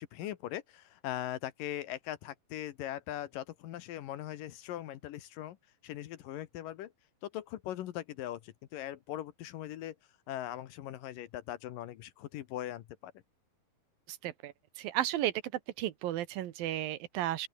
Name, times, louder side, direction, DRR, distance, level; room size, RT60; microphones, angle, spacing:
voice 1, 0.0-5.6 5.8-6.9 7.2-10.0 10.3-13.1, left 12 dB, 70° left, 2.7 m, -40 dB
voice 2, 14.1-15.3 15.8-17.5, right 13 dB, 75° right, 2.9 m, -34 dB
open air
omnidirectional pair, 4.3 m